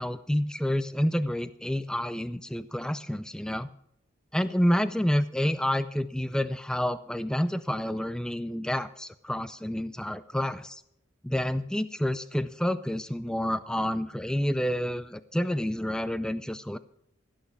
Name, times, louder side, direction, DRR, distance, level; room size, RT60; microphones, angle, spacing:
voice 1, 0.0-3.7 4.3-10.8 11.2-16.8, equal, 5° left, 14 dB, 0.4 m, -29 dB
16.5 x 6.5 x 7.0 m, 0.73 s
head